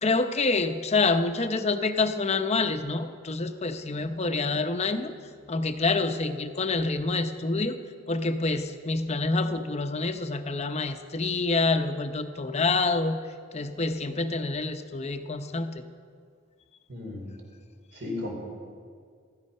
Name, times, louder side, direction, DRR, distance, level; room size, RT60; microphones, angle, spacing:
voice 1, 0.0-5.1 5.4-7.8 8.1-13.2 13.5-15.8, left 3 dB, 35° left, 8 dB, 0.7 m, -27 dB
voice 2, 16.9-17.3 17.9-18.4, left 2 dB, 65° right, 0 dB, 3.8 m, -34 dB
15.5 x 13.0 x 5.4 m, 2.1 s
head